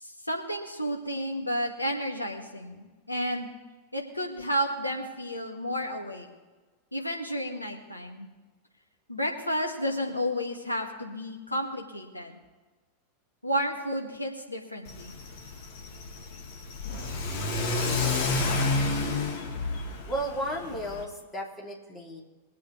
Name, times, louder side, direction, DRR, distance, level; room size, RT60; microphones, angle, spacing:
voice 1, 0.0-3.5 3.9-6.3 6.9-8.3 9.1-12.4 13.4-15.1, equal, 85° left, 1 dB, 1.8 m, -32 dB
Car / Accelerating revving vroom, 14.9-21.0, left 3 dB, 45° left, 1.9 m, -30 dB
voice 2, 20.0-22.2, right 1 dB, 15° left, -2 dB, 2.9 m, -34 dB
22.0 x 8.3 x 3.2 m, 1.3 s
figure-of-eight pair, 90°, 0 cm